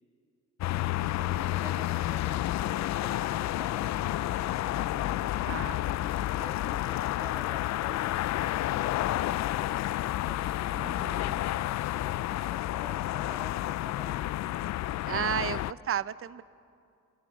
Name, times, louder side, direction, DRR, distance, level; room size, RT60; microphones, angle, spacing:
sound 1, 0.6-15.7, left 14 dB, 65° left, 0.5 m, -30 dB
voice 1, 1.0-4.1 4.8-9.9 10.2-14.3 15.0-15.2, right 1 dB, 10° right, 4 dB, 2.4 m, -50 dB
voice 2, 5.5-5.8 10.7-11.4 15.1-16.4, right 9 dB, 45° right, 17 dB, 0.6 m, -33 dB
28.0 x 21.0 x 6.4 m, 2.4 s
cardioid pair, 90°, 30 cm